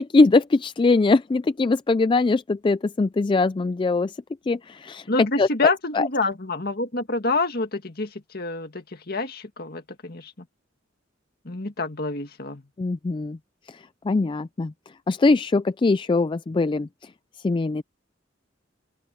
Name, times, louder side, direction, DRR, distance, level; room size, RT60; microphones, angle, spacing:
voice 1, 0.0-4.2 4.5-5.1 5.4-5.5 5.9-6.1 12.8-13.4 13.7-14.7 15.1-17.1 17.4-17.8, left 3 dB, 25° left, 0.3 m, -22 dB
voice 2, 5.1-10.5 11.4-12.6, left 3 dB, 50° left, 2.0 m, -27 dB
open air
head